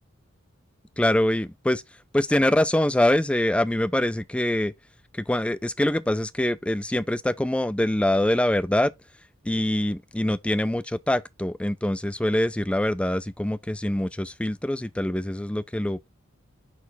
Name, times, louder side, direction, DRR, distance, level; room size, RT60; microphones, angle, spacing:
voice 1, 1.0-1.8 2.1-4.7 5.1-8.9 9.4-16.1, left 1 dB, 5° left, 0.4 m, -24 dB
7.1 x 4.2 x 4.1 m
head